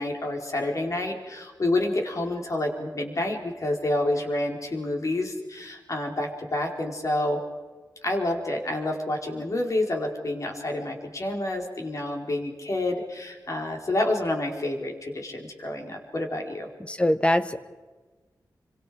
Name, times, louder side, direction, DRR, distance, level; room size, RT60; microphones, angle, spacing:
voice 1, 0.0-7.4 8.0-16.7, left 1 dB, 45° left, 1 dB, 4.4 m, -28 dB
voice 2, 16.8-17.6, left 1 dB, 15° left, 10 dB, 1.4 m, -23 dB
29.0 x 25.5 x 5.1 m, 1.3 s
wide cardioid pair, 125°, 7 cm